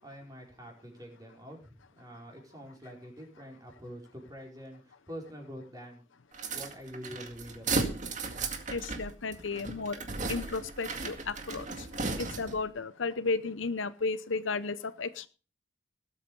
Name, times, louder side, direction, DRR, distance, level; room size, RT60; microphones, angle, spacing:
voice 1, 0.0-6.0 6.5-7.9, equal, 20° right, 0 dB, 4.7 m, -46 dB
sound 1, 6.3-12.7, right 3 dB, 40° right, 2.1 m, -35 dB
voice 2, 8.7-10.0 10.3-15.3, left 4 dB, 75° left, 13 dB, 0.8 m, -34 dB
19.0 x 8.5 x 5.5 m, 0.36 s
head